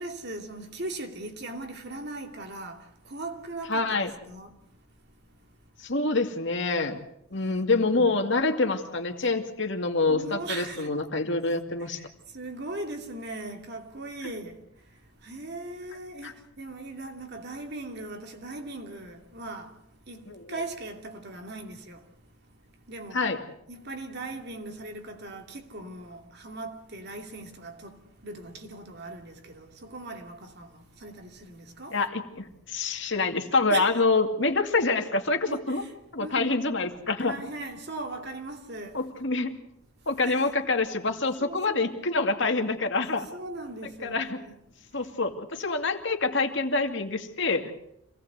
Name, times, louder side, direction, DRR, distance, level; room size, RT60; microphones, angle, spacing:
voice 1, 0.0-4.6 7.4-8.2 9.2-9.3 10.1-10.9 11.8-14.6 15.2-19.8 20.1-22.0 22.9-23.3 23.7-32.0 33.7-33.9 35.5-35.9 36.2-36.5 37.2-39.1 40.2-40.4 41.4-41.9 43.3-44.5, right 2 dB, 50° right, 2.7 m, -39 dB
voice 2, 3.7-4.1 5.8-7.0 7.3-12.0 16.2-16.3 20.3-20.6 23.1-23.4 31.9-35.8 36.1-37.4 38.9-39.6 40.1-43.3 44.0-44.4 44.9-47.7, left 3 dB, 55° left, 2.5 m, -26 dB
26.5 x 18.5 x 8.2 m
head